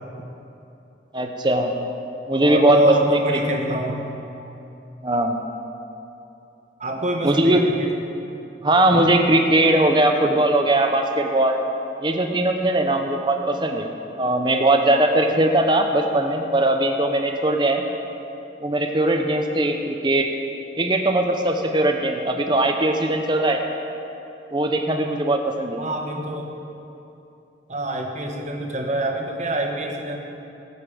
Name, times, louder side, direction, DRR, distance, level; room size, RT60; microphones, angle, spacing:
voice 1, 1.1-1.7 2.3-3.4 5.0-5.4 7.2-7.6 8.6-11.6 12.0-13.9 14.2-17.8 18.6-20.3 20.8-23.6 24.5-25.8, right 1 dB, 25° right, 4 dB, 0.8 m, -20 dB
voice 2, 2.4-4.1 6.8-7.9 25.8-26.5 27.7-30.2, right 1 dB, 40° right, 1 dB, 1.4 m, -25 dB
18.0 x 8.2 x 5.2 m, 2.8 s
head